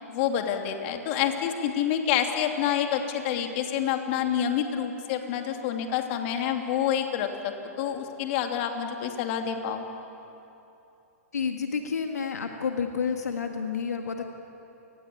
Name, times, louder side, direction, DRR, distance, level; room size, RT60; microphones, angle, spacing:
voice 1, 0.1-9.8, left 9 dB, 50° left, 4 dB, 2.9 m, -28 dB
voice 2, 11.3-14.2, left 6 dB, 85° left, 4 dB, 1.8 m, -30 dB
29.0 x 20.0 x 8.6 m, 2.9 s
hypercardioid pair, 120°, 8 cm